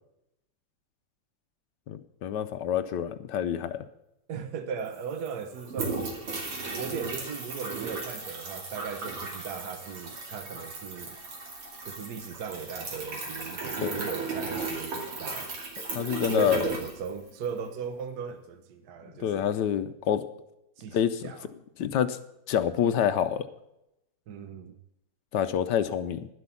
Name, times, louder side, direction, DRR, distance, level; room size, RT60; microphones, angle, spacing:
voice 1, 1.9-3.9 13.8-14.0 15.9-16.7 19.2-20.2 20.9-21.3 21.8-22.2 22.5-23.5 25.3-26.3, left 9 dB, 70° left, 1.1 m, -27 dB
voice 2, 4.3-6.1 6.7-11.2 11.9-15.5 16.3-19.6 20.8-21.0 21.2-21.5 24.3-24.8, right 6 dB, 60° right, 1.1 m, -37 dB
sound 1, 4.5-4.6 4.8-17.6, right 3 dB, 85° right, 3.5 m, -36 dB
11.5 x 7.9 x 7.0 m
omnidirectional pair, 2.3 m